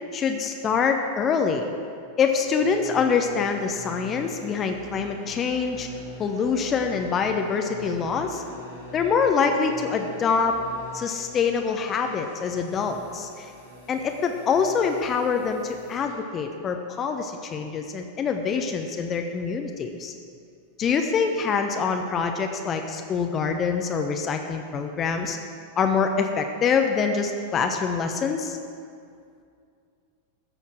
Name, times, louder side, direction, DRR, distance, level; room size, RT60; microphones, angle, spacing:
voice 1, 0.1-1.7 2.2-5.9 6.2-8.4 8.9-10.6 10.9-13.5 13.9-20.1 20.8-25.4 25.8-28.6, left 5 dB, 25° left, 5 dB, 0.9 m, -25 dB
sound 1, 2.4-16.2, left 1 dB, 90° left, 3.4 m, -44 dB
14.0 x 7.0 x 7.7 m, 2.3 s
figure-of-eight pair, 90°, 0 cm